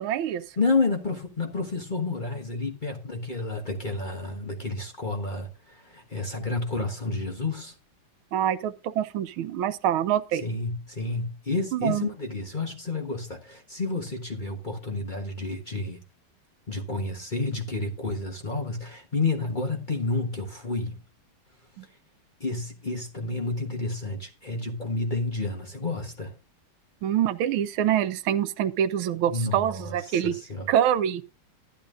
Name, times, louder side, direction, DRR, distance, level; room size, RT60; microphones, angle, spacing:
voice 1, 0.0-0.4 8.3-10.4 11.7-12.1 21.8-21.9 27.0-30.3 30.7-31.2, right 10 dB, 90° right, 1.6 m, -25 dB
voice 2, 0.6-7.7 10.4-16.0 16.7-21.0 22.4-26.3 29.3-30.7, left 3 dB, 30° left, 1.1 m, -30 dB
12.0 x 11.0 x 2.6 m
omnidirectional pair, 2.2 m